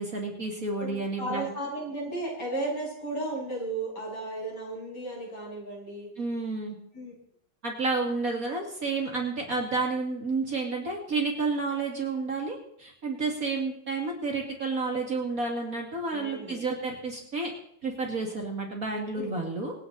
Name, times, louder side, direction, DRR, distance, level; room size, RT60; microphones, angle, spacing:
voice 1, 0.0-1.5 6.2-6.8 7.6-17.5 17.8-19.7, right 3 dB, 40° right, 0 dB, 2.8 m, -30 dB
voice 2, 0.8-6.1 6.9-7.1 16.1-16.7 19.1-19.5, right 2 dB, 50° left, -4 dB, 8.4 m, -35 dB
26.0 x 9.7 x 4.2 m, 0.69 s
omnidirectional pair, 2.3 m